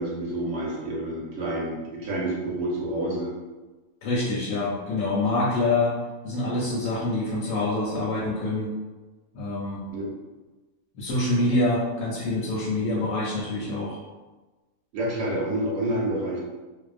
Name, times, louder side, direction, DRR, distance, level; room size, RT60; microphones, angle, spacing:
voice 1, 0.0-3.3 9.9-10.1 14.9-16.4, right 1 dB, 65° right, -3 dB, 0.8 m, -28 dB
voice 2, 4.0-5.9 6.2-8.7 9.3-9.8 10.9-14.0, left 2 dB, 80° left, -7 dB, 1.0 m, -26 dB
2.6 x 2.0 x 2.4 m, 1.2 s
omnidirectional pair, 1.5 m